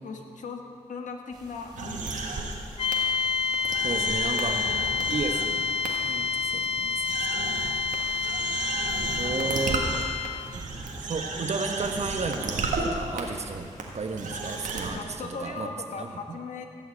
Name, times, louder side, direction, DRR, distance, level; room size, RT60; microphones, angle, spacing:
voice 1, 0.0-2.3 4.8-5.2 9.1-10.1 14.9-16.7, left 4 dB, 75° left, 3 dB, 1.5 m, -39 dB
sound 1, 1.3-14.9, right 1 dB, 30° right, 2.8 m, -49 dB
sound 2, 1.8-2.5 2.9-3.0 3.5-5.4 5.8-5.9 6.6-6.7 7.1-12.9 13.2-13.3 13.8-13.9 14.2-14.9, right 3 dB, 85° right, 1.7 m, -33 dB
sound 3, 2.8-10.5, left 6 dB, 45° left, 0.6 m, -28 dB
voice 2, 3.8-4.6 5.1-5.7 6.0-7.5 9.2-9.9 11.0-15.7 16.0-16.1, right 4 dB, 55° right, 6 dB, 1.2 m, -33 dB
16.0 x 5.8 x 8.4 m, 2.5 s
cardioid pair, 65°, 13 cm